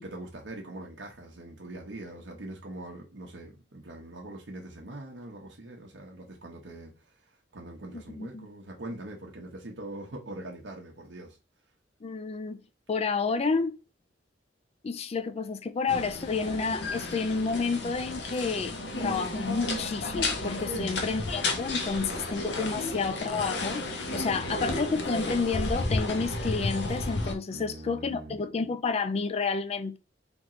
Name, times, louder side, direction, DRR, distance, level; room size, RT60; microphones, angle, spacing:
voice 1, 0.0-11.4 20.7-21.4 22.8-23.2 24.2-24.7 27.5-28.4, right 1 dB, 90° right, 0.9 m, -43 dB
voice 2, 7.9-8.5 12.0-12.6 12.9-13.8 14.8-30.0, left 4 dB, 35° left, 0.4 m, -30 dB
sound 1, 15.9-27.3, left 2 dB, 70° left, 0.8 m, -32 dB
3.5 x 3.0 x 3.7 m
head